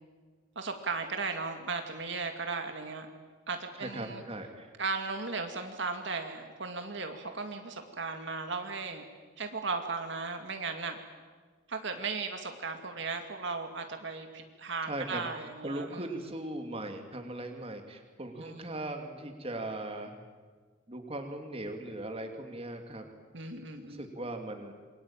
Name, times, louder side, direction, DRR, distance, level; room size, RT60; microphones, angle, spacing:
voice 1, 0.6-3.1 3.5-4.2 4.8-9.0 9.4-11.0 11.7-16.1 18.4-18.7 23.3-24.1, right 4 dB, 60° right, 5 dB, 2.3 m, -36 dB
voice 2, 3.8-4.7 14.8-15.3 15.6-20.1 20.9-23.0 23.6-24.7, right 1 dB, 30° right, 5 dB, 2.8 m, -39 dB
27.5 x 23.5 x 9.0 m, 1.5 s
head